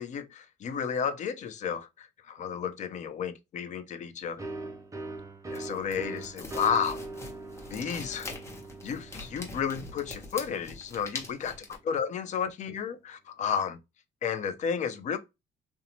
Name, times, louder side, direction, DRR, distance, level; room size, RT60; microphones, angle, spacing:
voice 1, 0.0-4.4 5.5-7.0 7.7-8.3 8.8-11.5 11.9-13.8 14.2-15.2, left 7 dB, 45° left, 0.5 m, -32 dB
sound 1, 4.4-11.9, right 2 dB, 20° right, 0.5 m, -42 dB
sound 2, 5.5-11.8, left 2 dB, 15° left, 0.9 m, -43 dB
2.7 x 2.1 x 2.8 m
cardioid pair, 110°, 17 cm